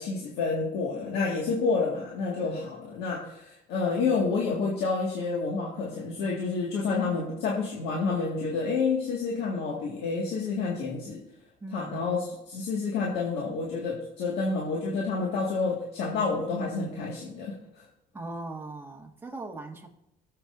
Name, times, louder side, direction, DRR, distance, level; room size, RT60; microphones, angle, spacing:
voice 1, 0.0-11.2 11.7-17.8, left 4 dB, 85° left, -2 dB, 1.9 m, -29 dB
voice 2, 11.6-12.0 18.1-19.9, right 2 dB, 15° right, 1 dB, 1.8 m, -39 dB
17.0 x 7.6 x 2.6 m, 0.82 s
cardioid pair, 110°, 17 cm